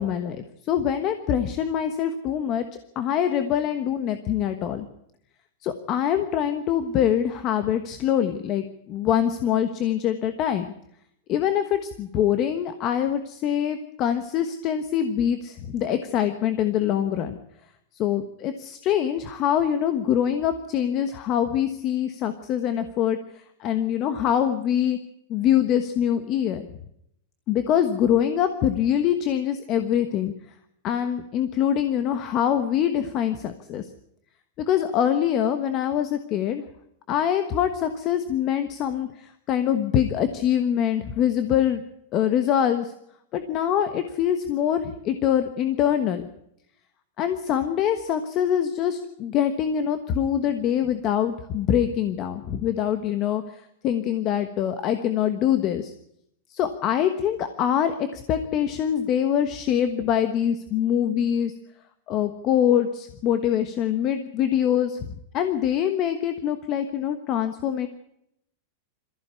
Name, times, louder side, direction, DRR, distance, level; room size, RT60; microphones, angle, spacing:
voice 1, 0.0-2.6 2.9-4.8 5.6-10.7 11.3-17.4 18.0-25.0 25.3-26.6 27.5-30.3 30.8-33.9 34.6-36.6 37.1-41.8 42.1-42.9 43.3-46.2 47.2-55.9 56.5-61.5 62.1-67.9, left 9 dB, 30° left, 9 dB, 1.2 m, -24 dB
22.5 x 15.0 x 8.3 m, 0.78 s
supercardioid pair, 170°, 0 cm